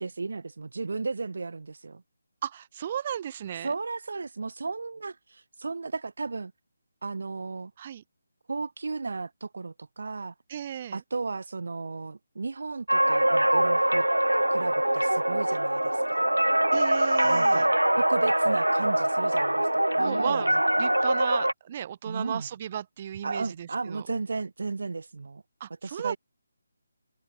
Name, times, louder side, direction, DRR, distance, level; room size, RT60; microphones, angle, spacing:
voice 1, 0.0-2.0 3.6-6.5 7.0-7.7 8.5-10.3 10.9-14.1 14.5-16.3 17.2-20.5 22.0-22.5 23.2-25.4 25.8-26.2, right 4 dB, 55° right, 5.2 m, -34 dB
voice 2, 2.4-3.7 7.8-8.0 10.5-11.0 16.7-17.7 20.0-24.0 25.6-26.2, right 9 dB, 30° right, 4.5 m, -35 dB
sound 1, 12.9-21.5, right 1 dB, 80° right, 6.9 m, -23 dB
figure-of-eight pair, 150°, 0 cm